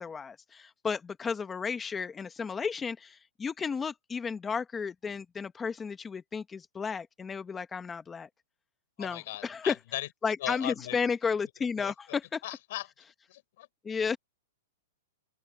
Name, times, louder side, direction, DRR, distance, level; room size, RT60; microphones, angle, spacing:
voice 1, 0.0-8.3 9.0-9.8 10.2-12.4 13.8-14.2, left 5 dB, 10° left, 1.1 m, -33 dB
voice 2, 9.0-10.1 10.4-11.0 11.8-11.9 12.4-12.9 13.3-13.7, left 16 dB, 55° left, 6.1 m, -38 dB
open air
hypercardioid pair, 155°, 0 cm